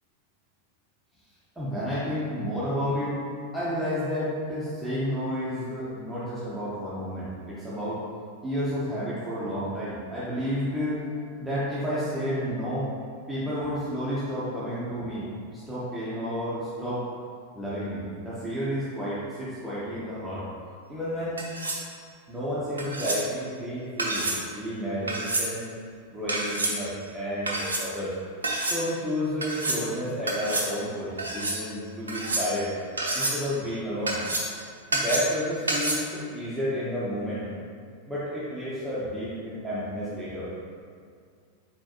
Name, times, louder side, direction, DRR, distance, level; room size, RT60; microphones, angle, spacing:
voice 1, 1.6-3.2 3.5-8.0 8.4-12.9 13.3-17.1 17.5-20.5 20.9-21.4 22.3-24.3 24.5-25.6 26.1-28.2 28.6-32.7 33.1-34.2 34.9-37.4 38.1-40.5, equal, 5° right, -11 dB, 1.0 m, -31 dB
sound 1, 21.4-21.9 22.8-23.2 24.0-24.4 25.1-25.5 26.3-26.7 27.5-27.8 28.4-28.8 29.4-29.8 30.3-30.7 31.2-31.6 32.1-32.6 33.0-33.4 34.1-34.6 34.9-35.4 35.7-35.9, right 2 dB, 75° right, 0.7 m, -28 dB
4.3 x 4.2 x 3.0 m, 2.2 s
figure-of-eight pair, 90°, 0 cm